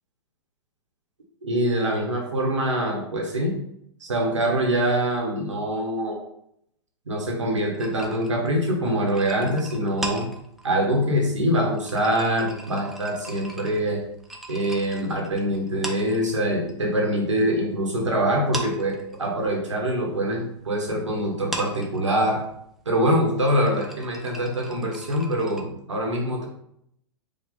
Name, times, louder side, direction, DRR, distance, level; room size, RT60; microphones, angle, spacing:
voice 1, 1.4-3.5 4.0-6.2 7.1-10.3 10.6-14.0 14.5-22.4 22.8-26.4, equal, 85° right, 0 dB, 1.1 m, -24 dB
sound 1, 7.7-16.8 17.0-18.1 18.4-25.6, right 1 dB, ahead, 0.6 m, -39 dB
5.1 x 2.3 x 3.9 m, 0.73 s
hypercardioid pair, 115°, 15 cm